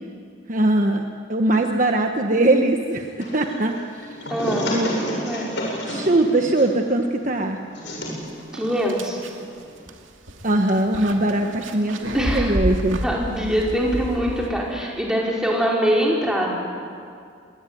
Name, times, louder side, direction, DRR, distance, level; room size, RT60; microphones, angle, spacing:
voice 1, 0.5-1.0 1.3-3.8 4.7-4.9 5.8-7.6 10.4-13.0, right 2 dB, 40° right, 3 dB, 1.2 m, -21 dB
sound 1, 3.2-9.9, equal, 65° left, 7.4 m, -31 dB
voice 2, 4.3-4.7 5.1-5.6 8.5-9.2 12.1-12.6 13.0-16.5, equal, 5° right, -3 dB, 5.0 m, -23 dB
sound 2, 8.0-8.1 8.5-14.9, equal, 75° right, 2.5 m, -31 dB
26.5 x 21.5 x 9.3 m, 2.2 s
head